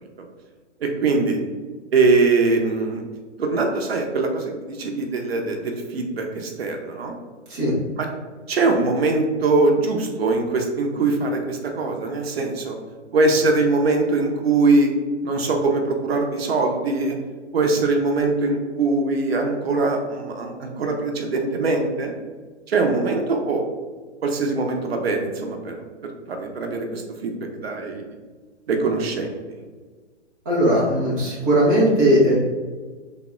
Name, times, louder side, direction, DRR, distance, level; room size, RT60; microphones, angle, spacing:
voice 1, 0.8-1.4 1.9-3.0 3.4-7.1 8.0-8.1 8.5-12.8 13.1-14.9 15.2-17.2 17.5-22.2 22.7-23.6 24.2-25.8 26.3-28.0 28.7-29.3, right 3 dB, 55° right, 3 dB, 0.6 m, -22 dB
voice 2, 30.5-32.4, equal, 15° right, -7 dB, 0.3 m, -18 dB
3.4 x 2.1 x 3.5 m, 1.4 s
figure-of-eight pair, 120°, 36 cm